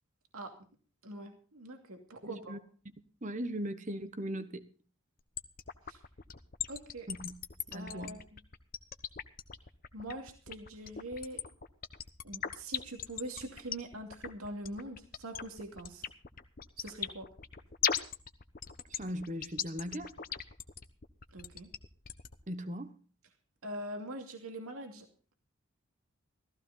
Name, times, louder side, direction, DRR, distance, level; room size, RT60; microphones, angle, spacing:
voice 1, 1.0-2.6 5.9-6.0 6.7-7.1 7.7-8.2 9.9-11.4 12.2-16.0 16.8-17.3 21.3-21.7 23.6-25.1, right 1 dB, 85° right, 2.5 m, -43 dB
voice 2, 2.2-2.6 3.2-4.7 7.1-7.3 7.7-8.1 18.9-20.1 22.5-22.9, equal, 35° right, 1.2 m, -38 dB
sound 1, 5.4-22.4, left 8 dB, 40° left, 1.0 m, -38 dB
15.0 x 14.5 x 4.0 m
head